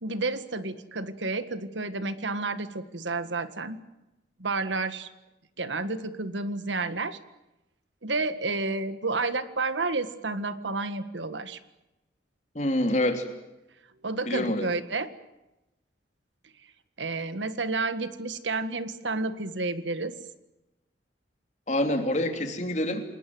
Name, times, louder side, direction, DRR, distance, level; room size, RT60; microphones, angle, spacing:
voice 1, 0.0-3.8 4.4-5.1 5.6-7.2 8.0-11.6 14.0-15.1 17.0-20.1, right 3 dB, 90° right, 12 dB, 1.8 m, -30 dB
voice 2, 12.5-13.3 14.3-14.7 21.7-23.0, left 1 dB, 40° left, 6 dB, 3.2 m, -26 dB
28.5 x 20.0 x 7.9 m, 0.98 s
head